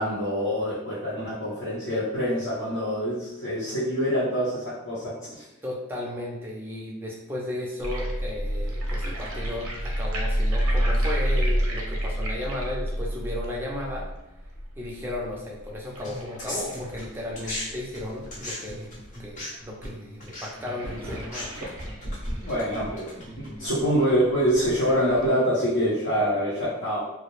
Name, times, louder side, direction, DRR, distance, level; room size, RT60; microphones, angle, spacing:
voice 1, 0.0-5.4 22.4-27.0, equal, 70° left, -11 dB, 0.7 m, -25 dB
voice 2, 5.6-14.1 14.8-18.9 19.2-21.7, left 1 dB, 10° right, -4 dB, 0.4 m, -35 dB
sound 1, 7.8-18.8 19.2-19.3 19.5-19.6 20.2-25.3, equal, 85° right, 0.6 m, -29 dB
sound 2, 16.0-17.6 17.9-23.7, left 1 dB, 35° left, 0.6 m, -37 dB
2.2 x 2.0 x 2.9 m, 0.93 s
head